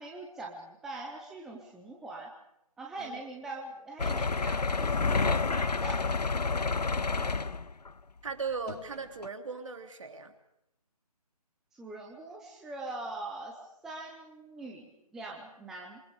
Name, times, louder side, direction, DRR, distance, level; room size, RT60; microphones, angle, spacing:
voice 1, 0.0-2.3 2.8-6.0 11.7-13.6 13.8-16.0, right 2 dB, ahead, -1 dB, 0.8 m, -42 dB
sound 1, 4.0-7.9 8.7-8.8 9.2-9.3, left 4 dB, 85° left, 0.9 m, -29 dB
voice 2, 7.1-7.5 8.2-10.3, right 5 dB, 50° right, 6 dB, 3.2 m, -38 dB
26.5 x 24.5 x 5.2 m, 0.84 s
figure-of-eight pair, 160°, 20 cm